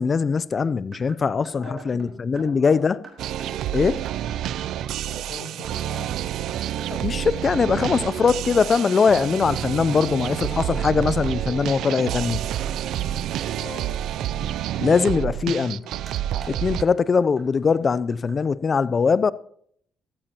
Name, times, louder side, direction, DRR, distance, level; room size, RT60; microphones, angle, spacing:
voice 1, 0.0-3.0 3.7-4.0 6.9-12.4 14.8-15.8 16.5-19.3, left 5 dB, 40° left, 0.5 m, -21 dB
sound 1, 0.6-5.2 5.4-5.5 5.8-6.0 6.8-7.0 7.5-10.8 11.0-11.6 11.9-16.2 16.4-16.5 16.8-16.9 17.2-17.4 17.7-17.8 18.1-18.4, right 3 dB, 35° right, 4.3 m, -47 dB
voice 2, 1.2-3.0 4.9-6.1 13.5-13.9, left 3 dB, 65° left, 4.9 m, -42 dB
sound 2, 3.2-16.8, right 11 dB, 80° right, 0.4 m, -28 dB
14.0 x 14.0 x 2.9 m
cardioid pair, 90°, 0 cm